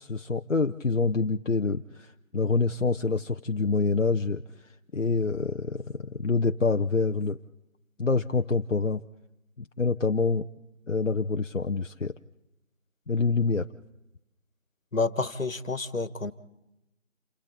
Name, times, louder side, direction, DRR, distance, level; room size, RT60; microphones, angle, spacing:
voice 1, 0.0-7.4 8.0-9.0 9.6-10.5 10.9-12.2 13.1-13.7, left 4 dB, 65° left, 6 dB, 0.9 m, -26 dB
voice 2, 14.9-16.3, left 3 dB, 85° left, 14 dB, 1.6 m, -29 dB
28.5 x 22.0 x 4.1 m, 0.92 s
figure-of-eight pair, 180°, 39 cm